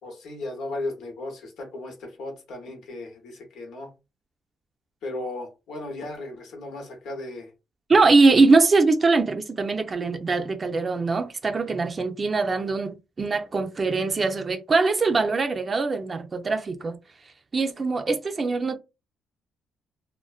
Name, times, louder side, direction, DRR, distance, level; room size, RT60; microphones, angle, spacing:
voice 1, 0.0-3.9 5.0-7.5, left 2 dB, 75° left, 0.9 m, -36 dB
voice 2, 7.9-17.0 17.5-18.8, right 3 dB, 35° right, 0.4 m, -22 dB
2.4 x 2.1 x 2.3 m
cardioid pair, 90°, 0 cm